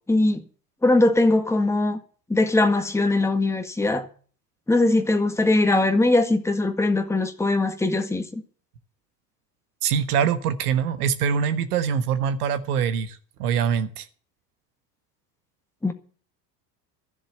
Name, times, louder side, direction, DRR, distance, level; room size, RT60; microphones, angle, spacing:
voice 1, 0.1-0.4 0.8-2.0 2.3-4.1 4.7-8.4 15.8-15.9, left 2 dB, 5° left, 1.7 m, -21 dB
voice 2, 9.8-14.1, right 7 dB, 65° right, 1.4 m, -24 dB
13.5 x 7.3 x 9.2 m
figure-of-eight pair, 75°, 49 cm